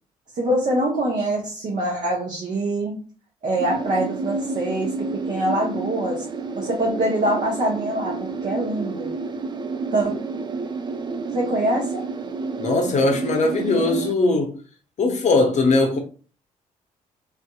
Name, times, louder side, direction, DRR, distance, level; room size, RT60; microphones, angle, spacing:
voice 1, 0.4-2.9 3.4-4.9 5.3-6.2 6.5-9.2 9.9-10.2 11.3-12.0, right 1 dB, 45° right, 0.8 m, -24 dB
sound 1, 3.6-14.1, right 4 dB, 25° right, 0.4 m, -30 dB
voice 2, 12.6-14.6 15.0-16.0, left 3 dB, 40° left, 0.7 m, -20 dB
2.6 x 2.4 x 2.3 m
hypercardioid pair, 45°, 18 cm